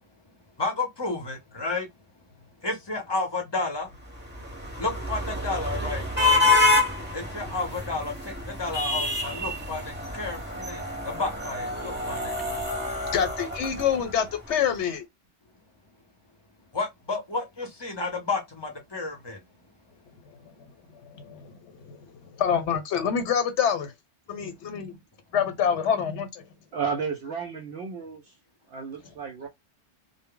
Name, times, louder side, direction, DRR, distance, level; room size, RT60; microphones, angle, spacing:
voice 1, 0.6-1.9 2.6-3.9 4.8-6.4 7.1-8.1 8.5-12.3 16.7-19.4, left 3 dB, 25° left, 0.7 m, -31 dB
sound 1, 4.1-14.4, left 2 dB, 10° right, 0.8 m, -27 dB
voice 2, 13.1-15.0 21.1-22.0 22.4-23.9 24.3-25.0 25.3-26.4, left 8 dB, 75° left, 1.0 m, -26 dB
voice 3, 26.7-28.3 28.7-29.5, right 6 dB, 65° right, 0.7 m, -32 dB
2.1 x 2.0 x 3.5 m
omnidirectional pair, 1.2 m